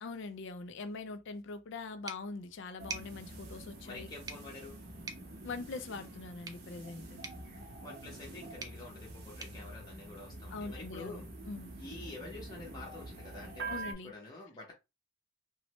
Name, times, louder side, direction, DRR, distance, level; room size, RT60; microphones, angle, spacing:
voice 1, 0.0-4.1 5.4-7.2 10.5-11.7 13.7-14.1, left 3 dB, 55° left, 0.4 m, -43 dB
sound 1, 2.1-10.7, right 4 dB, 15° right, 0.3 m, -50 dB
sound 2, 2.8-13.9, right 2 dB, 50° right, 0.8 m, -46 dB
voice 2, 3.8-4.8 7.8-11.3 11.8-14.7, left 2 dB, 20° left, 0.7 m, -48 dB
3.1 x 2.1 x 2.9 m
head